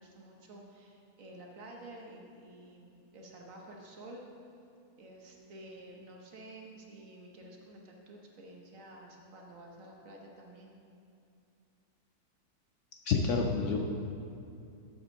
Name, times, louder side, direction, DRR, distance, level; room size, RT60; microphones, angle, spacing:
voice 1, 0.0-4.2 5.0-10.7, right 1 dB, 60° right, 0 dB, 1.4 m, -51 dB
voice 2, 13.0-13.8, left 4 dB, 65° left, 1 dB, 0.8 m, -28 dB
7.4 x 5.7 x 6.4 m, 2.5 s
omnidirectional pair, 1.6 m